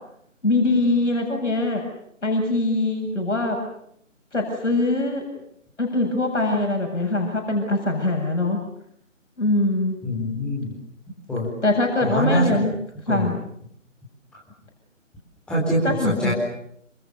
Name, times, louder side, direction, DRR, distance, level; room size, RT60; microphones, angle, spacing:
voice 1, 0.4-1.9 2.2-3.6 4.3-5.2 5.8-8.6 9.4-10.0 11.6-12.7 13.1-13.3 15.8-16.3, left 2 dB, 65° left, 1 dB, 7.9 m, -22 dB
voice 2, 10.0-10.7 11.3-11.5 12.0-12.4 13.1-13.3 15.5-16.3, equal, ahead, -5 dB, 4.3 m, -24 dB
28.0 x 27.5 x 6.8 m, 0.71 s
figure-of-eight pair, 150°, 39 cm